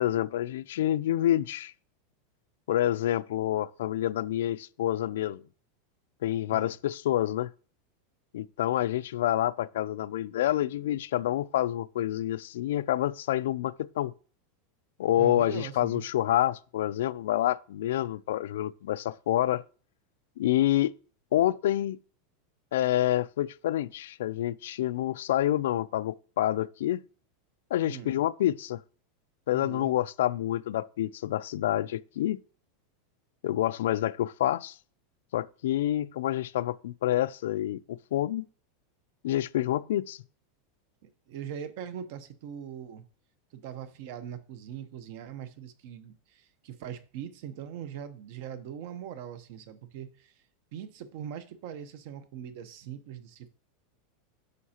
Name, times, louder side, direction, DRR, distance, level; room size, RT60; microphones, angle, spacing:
voice 1, 0.0-1.7 2.7-5.4 6.2-7.5 8.3-14.1 15.0-19.6 20.4-20.9 21.3-22.0 22.7-27.0 27.7-28.8 29.5-32.4 33.4-34.7 35.3-38.4 39.2-40.2, left 13 dB, 90° left, 0.3 m, -28 dB
voice 2, 15.2-16.0 27.8-28.1 29.5-29.9 41.0-43.0 43.5-50.4 50.7-53.5, right 9 dB, 50° right, 0.9 m, -41 dB
9.3 x 6.4 x 2.9 m
supercardioid pair, 170°, 0 cm